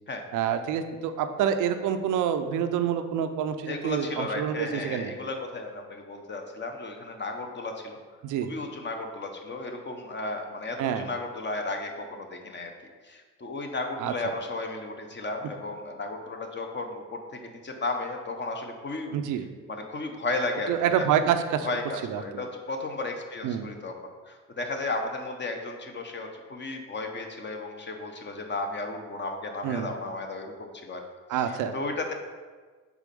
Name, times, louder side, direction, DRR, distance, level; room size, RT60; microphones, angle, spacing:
voice 1, 0.3-5.1 8.2-8.5 10.8-11.1 14.0-14.3 19.1-19.4 20.7-21.7 22.0-22.4 23.4-23.7 29.6-29.9 31.3-31.7, right 8 dB, 85° right, 8 dB, 0.5 m, -27 dB
voice 2, 3.7-8.0 8.4-12.7 13.0-19.1 19.7-21.0 21.6-23.9 24.3-31.0 31.3-32.1, left 2 dB, 35° left, 4 dB, 0.9 m, -34 dB
4.8 x 4.1 x 5.3 m, 1.4 s
cardioid pair, 90°, 30 cm